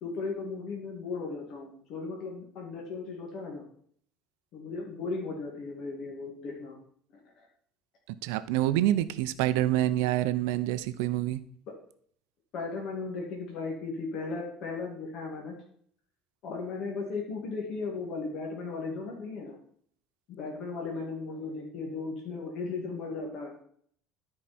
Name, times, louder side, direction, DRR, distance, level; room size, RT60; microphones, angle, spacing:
voice 1, 0.0-3.6 4.5-6.8 7.4-7.5 12.5-15.6 16.4-19.6 20.3-23.5, left 4 dB, 50° left, -1 dB, 2.1 m, -36 dB
voice 2, 8.1-11.4, right 13 dB, 85° right, 13 dB, 0.6 m, -27 dB
12.5 x 4.8 x 4.3 m, 0.62 s
cardioid pair, 140°, 0 cm